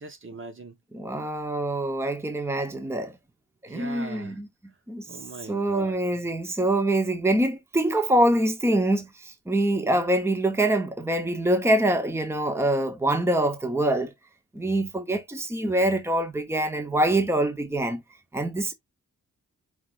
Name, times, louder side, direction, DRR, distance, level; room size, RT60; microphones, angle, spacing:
voice 1, 0.0-0.7 3.7-4.4 5.1-6.0, right 4 dB, 40° right, 1.1 m, -40 dB
voice 2, 0.9-3.1 3.6-4.5 4.9-5.1 5.5-14.1 14.5-18.0 18.3-18.7, right 1 dB, 10° right, 0.9 m, -25 dB
4.9 x 3.7 x 2.5 m
cardioid pair, 90°, 31 cm